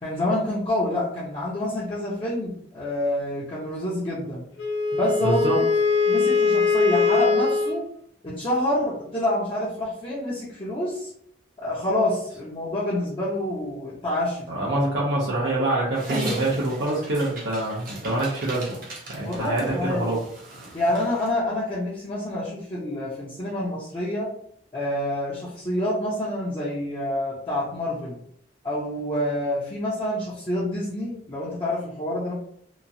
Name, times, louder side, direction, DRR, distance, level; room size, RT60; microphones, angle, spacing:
voice 1, 0.0-4.4 4.9-5.4 6.1-7.9 8.2-11.1 11.6-14.7 19.2-20.1 20.7-24.3 24.7-28.2 28.6-32.3, left 1 dB, 30° left, -8 dB, 0.6 m, -27 dB
Wind instrument woodwind instrument, 4.6-7.8, left 5 dB, 75° left, 0.6 m, -21 dB
voice 2, 5.2-5.6 14.5-18.8 19.1-20.2, right 2 dB, 85° right, -6 dB, 0.7 m, -25 dB
Dog, 15.9-21.3, right 1 dB, 50° right, 0.7 m, -36 dB
2.9 x 2.3 x 2.6 m, 0.67 s
head